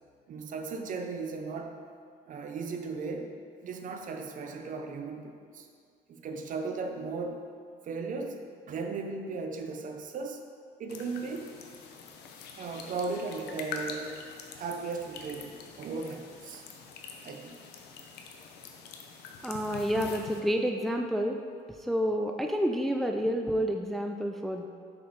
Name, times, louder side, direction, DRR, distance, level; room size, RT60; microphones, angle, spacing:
voice 1, 0.3-1.8 2.3-3.4 3.6-5.7 6.1-7.5 7.8-8.4 8.7-10.4 10.8-11.5 12.6-14.2 14.5-16.6 17.2-17.6, right 4 dB, 50° right, 5 dB, 0.7 m, -36 dB
sound 1, 10.9-20.4, left 5 dB, 80° left, 0.7 m, -45 dB
voice 2, 19.4-21.4 21.8-24.7, equal, ahead, 4 dB, 0.3 m, -29 dB
6.1 x 5.5 x 4.0 m, 2.2 s
cardioid pair, 110°, 17 cm